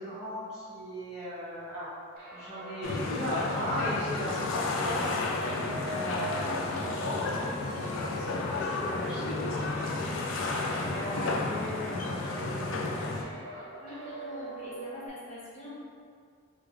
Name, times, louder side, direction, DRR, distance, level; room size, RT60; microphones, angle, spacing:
voice 1, 0.0-1.9 2.3-5.2 5.8-9.6 9.9-10.0 10.7-13.0, equal, 5° right, -13 dB, 0.8 m, -38 dB
sound 1, 2.2-15.1, right 2 dB, 45° right, 0.6 m, -43 dB
sound 2, 2.8-13.2, left 3 dB, 65° left, 0.4 m, -32 dB
voice 2, 5.5-5.9 10.0-10.6 13.8-15.8, left 2 dB, 35° left, -7 dB, 0.8 m, -44 dB
3.2 x 2.3 x 3.6 m, 2.2 s
head